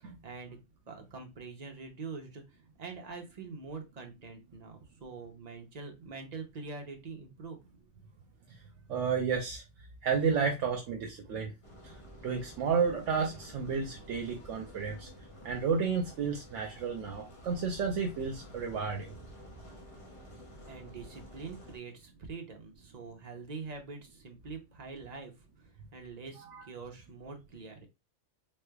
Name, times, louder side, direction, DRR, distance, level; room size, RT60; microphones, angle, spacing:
voice 1, 0.0-0.6 0.9-7.6 20.7-25.3 25.9-27.9, right 4 dB, 40° right, 0.7 m, -44 dB
voice 2, 8.9-9.6 10.0-11.5 11.8-11.9 12.2-15.1 15.4-19.1 26.4-26.6, right 6 dB, 80° right, 1.0 m, -31 dB
sound 1, 11.6-21.8, equal, 30° left, 0.9 m, -51 dB
3.7 x 3.3 x 2.2 m
omnidirectional pair, 1.3 m